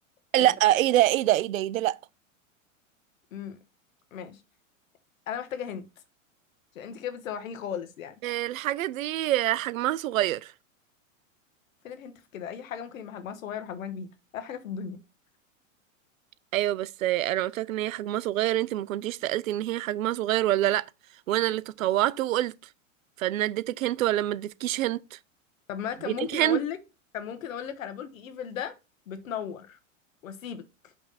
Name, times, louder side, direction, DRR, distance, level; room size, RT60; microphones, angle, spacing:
voice 1, 0.3-2.0 8.2-10.5 16.5-20.8 21.3-22.5 23.2-25.2 26.1-26.6, right 14 dB, 80° right, 0.5 m, -26 dB
voice 2, 4.1-4.4 5.3-5.9 6.7-8.1 11.8-15.0 25.7-26.8 27.1-28.8 29.1-29.8 30.2-30.9, left 8 dB, 80° left, 1.2 m, -36 dB
5.6 x 3.4 x 5.6 m
hypercardioid pair, 105°, 40 cm